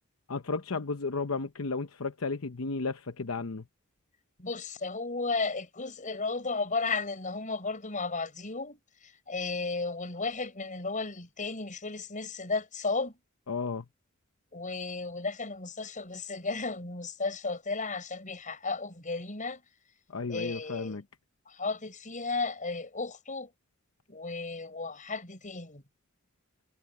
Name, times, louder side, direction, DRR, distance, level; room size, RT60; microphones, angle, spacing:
voice 1, 0.3-3.6 13.5-13.8 20.1-21.0, left 4 dB, 75° left, 0.9 m, -33 dB
voice 2, 4.4-8.8 9.3-13.1 14.5-19.6 20.3-21.0 21.5-23.5 24.1-25.8, left 3 dB, 40° left, 6.2 m, -34 dB
head